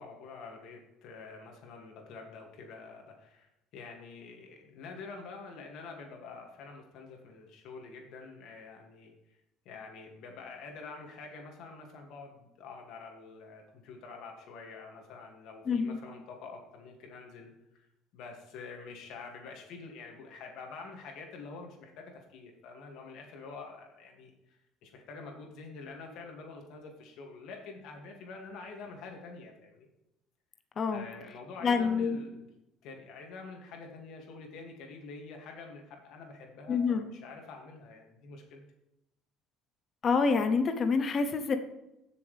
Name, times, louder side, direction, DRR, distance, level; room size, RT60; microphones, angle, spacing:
voice 1, 0.0-9.1 9.6-17.9 18.1-29.9 30.9-32.5 32.8-38.6, left 4 dB, 55° left, 2 dB, 2.4 m, -47 dB
voice 2, 15.7-16.0 30.8-31.0 31.6-32.2 36.7-37.0 40.0-41.6, left 5 dB, 25° left, 8 dB, 0.8 m, -27 dB
15.5 x 6.9 x 3.5 m, 0.90 s
cardioid pair, 170°, 0 cm